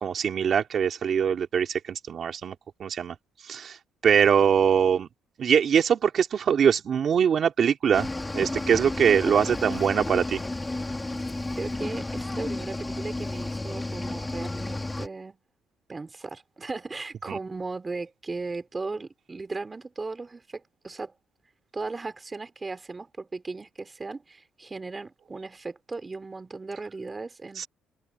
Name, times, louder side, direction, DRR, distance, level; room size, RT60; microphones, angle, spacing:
voice 1, 0.0-2.5 2.8-3.1 3.4-3.8 4.0-5.1 5.4-8.1 8.3-10.4 27.6-27.7, right 7 dB, 50° right, 3.0 m, -22 dB
Cricket / Waves surf, 7.9-15.1, left 2 dB, 15° left, 4.5 m, -32 dB
voice 2, 11.6-15.4 15.9-21.1 21.7-27.7, right 3 dB, 25° right, 3.5 m, -37 dB
cardioid pair, 95°, 0 cm